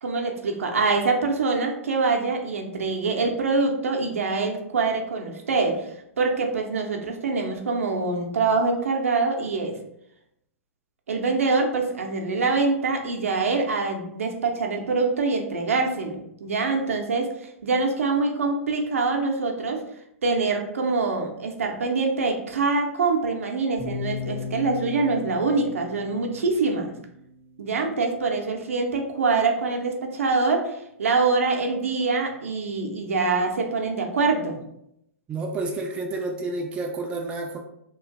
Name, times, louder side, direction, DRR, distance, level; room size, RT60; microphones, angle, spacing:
voice 1, 0.0-5.9 6.2-9.7 11.1-17.3 17.6-19.8 20.2-26.9 27.6-30.7 31.0-34.6, right 4 dB, 65° right, 2 dB, 0.6 m, -24 dB
sound 1, 23.8-27.8, left 5 dB, 85° left, 1.2 m, -37 dB
voice 2, 35.3-37.6, right 2 dB, 15° right, 2 dB, 0.3 m, -30 dB
3.0 x 2.5 x 3.5 m, 0.78 s
figure-of-eight pair, 105°, 8 cm